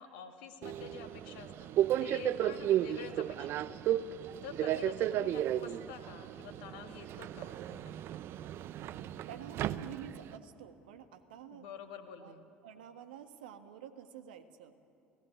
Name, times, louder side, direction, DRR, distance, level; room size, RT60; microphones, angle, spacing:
voice 1, 0.0-1.7 2.0-3.8 4.4-8.1 11.5-12.5, left 7 dB, 70° left, 7 dB, 2.2 m, -48 dB
Subway metro underground, 0.6-10.4, right 12 dB, 55° right, 0.8 m, -34 dB
voice 2, 9.3-11.7 12.2-12.3 12.6-14.7, right 9 dB, 75° right, 8 dB, 1.6 m, -49 dB
30.0 x 18.0 x 9.8 m, 2.8 s
hypercardioid pair, 60°, 5 cm